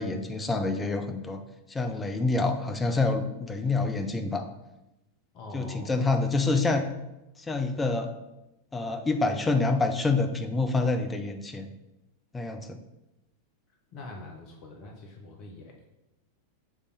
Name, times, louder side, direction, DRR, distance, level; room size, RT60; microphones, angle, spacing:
voice 1, 0.0-1.4 1.7-4.5 5.5-6.9 7.5-8.1 8.7-11.7 12.3-12.8, left 3 dB, 15° left, 6 dB, 0.7 m, -27 dB
voice 2, 5.3-6.1 13.9-15.9, left 2 dB, 40° left, 1 dB, 1.0 m, -44 dB
7.0 x 3.4 x 4.2 m, 0.94 s
figure-of-eight pair, 90°, 0 cm